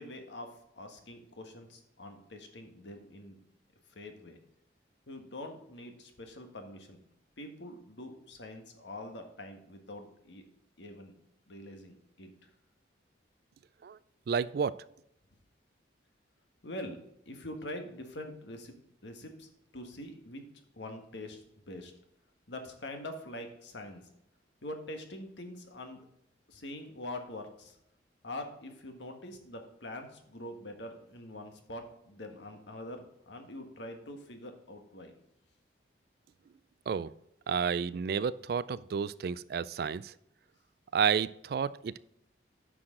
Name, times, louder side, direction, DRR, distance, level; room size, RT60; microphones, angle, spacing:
voice 1, 0.0-3.4 3.9-4.4 5.1-7.0 7.4-10.4 10.8-11.1 11.5-12.5 16.6-20.4 20.7-21.9 22.5-24.1 24.6-26.0 26.5-27.8 28.2-35.1, left 1 dB, 70° left, 5 dB, 1.5 m, -44 dB
voice 2, 14.3-14.8 36.9-37.1 37.5-40.1 40.9-42.0, right 6 dB, 55° right, 18 dB, 0.3 m, -31 dB
9.8 x 6.3 x 3.7 m, 0.79 s
head